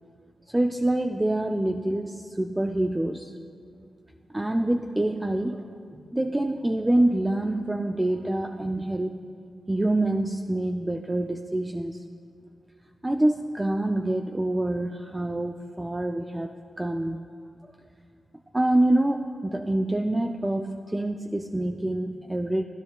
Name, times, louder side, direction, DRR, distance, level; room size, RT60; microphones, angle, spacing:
voice 1, 0.5-3.3 4.3-9.2 9.7-12.0 13.0-17.2 18.5-22.6, right 1 dB, 20° right, 5 dB, 0.4 m, -26 dB
15.5 x 10.5 x 2.3 m, 2.3 s
cardioid pair, 50°, 0 cm